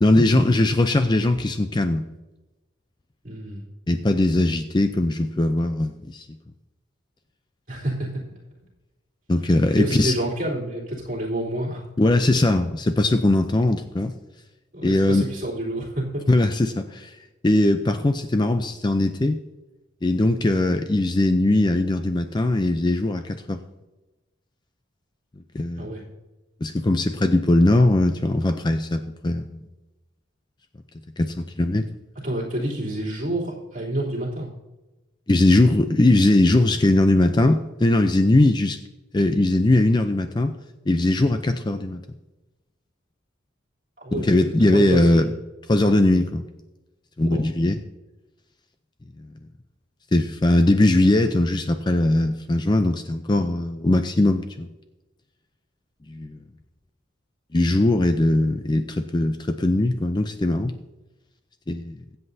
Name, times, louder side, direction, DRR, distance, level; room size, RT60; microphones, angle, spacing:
voice 1, 0.0-2.0 3.9-6.3 9.3-10.1 12.0-14.1 14.8-15.2 16.3-17.2 17.4-19.4 20.0-23.6 25.5-25.9 26.6-29.6 31.2-31.9 35.3-38.8 39.1-40.6 40.9-42.0 44.1-45.3 45.7-46.5 47.2-47.8 50.1-54.7 56.1-56.4 57.5-60.7 61.7-62.0, left 1 dB, 20° left, 8 dB, 0.4 m, -20 dB
voice 2, 3.2-3.7 7.7-8.1 9.7-11.8 14.7-16.2 25.8-26.0 32.2-34.5 44.0-45.3 47.2-47.5, right 1 dB, 40° right, -5 dB, 3.2 m, -28 dB
22.5 x 8.0 x 2.7 m, 1.1 s
head